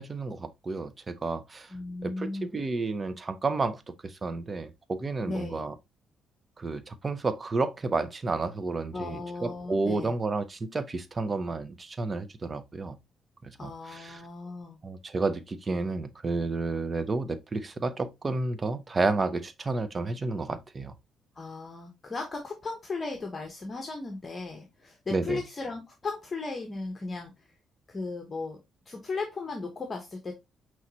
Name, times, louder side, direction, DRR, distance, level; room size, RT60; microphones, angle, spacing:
voice 1, 0.0-1.7 2.0-5.7 6.6-13.0 13.4-14.2 14.8-20.9 25.1-25.4, right 3 dB, 30° right, 0.6 m, -31 dB
voice 2, 1.7-2.6 5.2-5.6 8.9-10.2 13.6-14.8 21.3-27.4 27.9-30.3, left 3 dB, 30° left, 0.9 m, -36 dB
5.6 x 3.1 x 2.8 m
cardioid pair, 90°, 0 cm